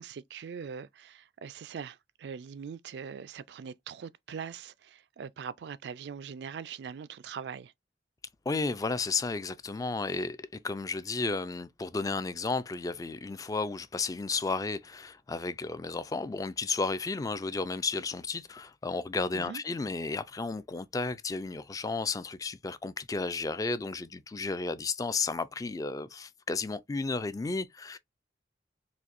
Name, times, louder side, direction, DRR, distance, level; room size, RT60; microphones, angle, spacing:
voice 1, 0.0-7.7 19.3-19.6, right 6 dB, 70° right, 0.3 m, -42 dB
voice 2, 8.5-28.0, left 3 dB, 20° left, 0.3 m, -33 dB
4.2 x 2.6 x 2.4 m
head